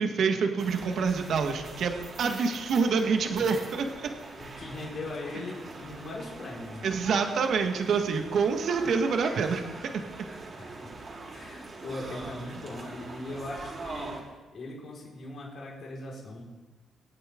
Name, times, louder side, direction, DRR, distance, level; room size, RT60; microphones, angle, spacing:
voice 1, 0.0-4.1 6.8-9.6, right 5 dB, 65° right, 5 dB, 1.6 m, -27 dB
sound 1, 0.6-14.2, right 3 dB, 45° right, 3.5 m, -43 dB
voice 2, 4.4-7.0 10.6-10.9 11.3-14.2 14.5-16.4, left 2 dB, 50° left, -3 dB, 4.8 m, -40 dB
24.5 x 8.7 x 3.8 m, 1.2 s
cardioid pair, 90°, 0 cm